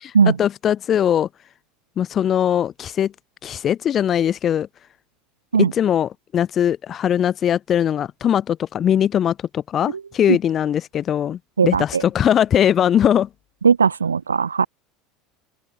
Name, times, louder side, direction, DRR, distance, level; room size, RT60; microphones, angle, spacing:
voice 1, 0.4-1.3 2.0-3.1 3.4-4.7 5.6-13.3, left 9 dB, 40° left, 1.8 m, -20 dB
voice 2, 11.6-12.0 13.6-14.7, right 6 dB, 85° right, 2.8 m, -17 dB
open air
figure-of-eight pair, 75°, 0 cm